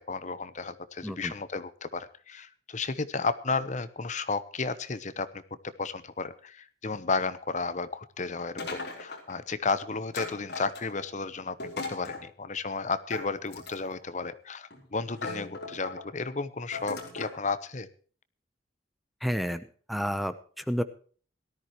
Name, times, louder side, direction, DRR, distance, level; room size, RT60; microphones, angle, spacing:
voice 1, 0.0-5.4 5.8-11.6 11.9-17.9, left 4 dB, 40° left, 14 dB, 0.9 m, -33 dB
voice 2, 1.0-1.3 19.2-20.8, equal, ahead, 11 dB, 0.8 m, -31 dB
sound 1, 8.6-9.4 10.1-11.1 11.6-12.3 13.1-14.0 14.7-14.8 15.2-16.0 16.7-17.4, left 3 dB, 60° left, 3.9 m, -38 dB
18.0 x 13.5 x 3.1 m, 0.43 s
head